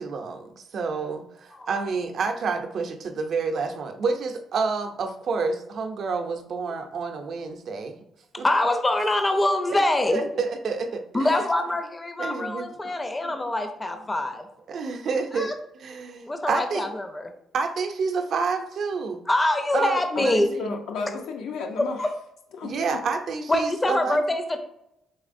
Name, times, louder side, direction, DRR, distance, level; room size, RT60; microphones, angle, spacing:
voice 1, 0.0-8.0 8.4-8.5 10.1-11.3 12.2-12.7 13.2-13.3 14.7-15.5 15.8-16.9 17.5-19.2 19.7-20.7 22.6-24.2, right 4 dB, 60° right, 5 dB, 0.5 m, -29 dB
voice 2, 8.3-10.2 11.1-14.5 15.3-15.6 16.3-17.3 19.3-20.5 22.0-22.1 23.5-24.6, left 1 dB, 20° left, 6 dB, 0.5 m, -24 dB
voice 3, 20.2-22.0 22.6-23.0, left 4 dB, 85° left, 3 dB, 0.6 m, -32 dB
4.1 x 3.3 x 2.5 m, 0.80 s
cardioid pair, 90°, 0 cm